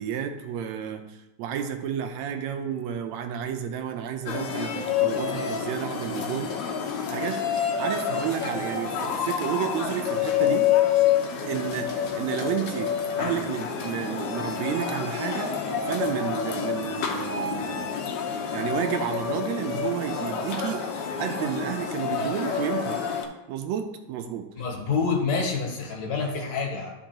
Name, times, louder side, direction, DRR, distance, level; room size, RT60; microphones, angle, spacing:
voice 1, 0.0-6.5 7.1-7.4 7.8-10.7 11.5-12.9 13.2-17.9 18.5-20.9 21.2-23.0 23.5-24.5, right 9 dB, 80° right, 6 dB, 1.9 m, -31 dB
sound 1, 4.3-23.2, left 8 dB, 90° left, 2.3 m, -28 dB
voice 2, 24.6-26.9, left 5 dB, 70° left, -1 dB, 2.7 m, -27 dB
13.0 x 5.4 x 2.9 m, 0.96 s
omnidirectional pair, 3.3 m